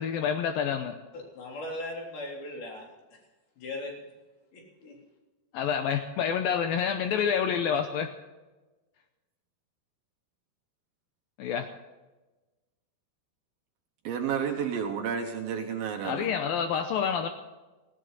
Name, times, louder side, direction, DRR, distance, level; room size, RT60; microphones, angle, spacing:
voice 1, 0.0-0.9 5.5-8.1 11.4-11.7 16.0-17.3, left 7 dB, 85° left, 2.1 m, -28 dB
voice 2, 1.1-2.8 3.6-3.9 4.5-5.0, left 1 dB, 60° left, 5.3 m, -38 dB
voice 3, 14.0-16.3, right 7 dB, 65° right, 2.6 m, -31 dB
18.0 x 17.0 x 4.1 m
omnidirectional pair, 5.2 m